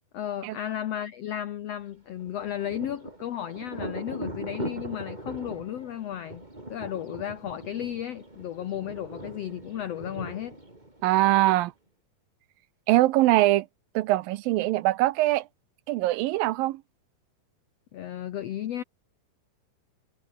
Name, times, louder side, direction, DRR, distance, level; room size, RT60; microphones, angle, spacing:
voice 1, 0.1-6.4 6.7-10.6 17.9-18.8, left 11 dB, 80° left, 1.4 m, -34 dB
Thunder, 2.1-11.6, right 1 dB, 10° right, 4.2 m, -40 dB
voice 2, 11.0-11.7 12.9-13.7 14.0-15.5 15.9-16.8, right 17 dB, 80° right, 2.4 m, -22 dB
omnidirectional pair, 4.3 m